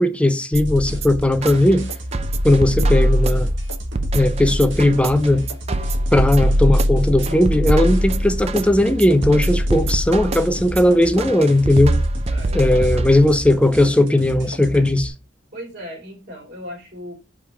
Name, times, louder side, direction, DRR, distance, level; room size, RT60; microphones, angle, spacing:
voice 1, 0.0-1.8 2.4-3.5 4.1-5.5 6.1-12.0 12.5-15.1, left 1 dB, 5° left, 0.7 m, -17 dB
sound 1, 0.5-13.5, equal, 35° right, 0.5 m, -22 dB
sound 2, 0.6-15.1, equal, 85° right, 1.7 m, -33 dB
voice 2, 6.2-6.6 12.3-13.2 15.5-17.1, equal, 60° right, 3.2 m, -38 dB
5.4 x 4.9 x 4.8 m
head